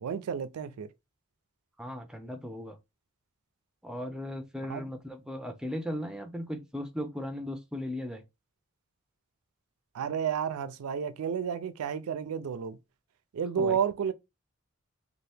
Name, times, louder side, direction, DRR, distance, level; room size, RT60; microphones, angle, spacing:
voice 1, 0.0-0.9 4.7-4.9 9.9-12.8 13.3-14.1, right 7 dB, 85° right, 0.4 m, -31 dB
voice 2, 1.8-2.8 3.8-8.2 13.6-13.8, left 1 dB, 5° right, 0.4 m, -37 dB
2.8 x 2.5 x 3.3 m
head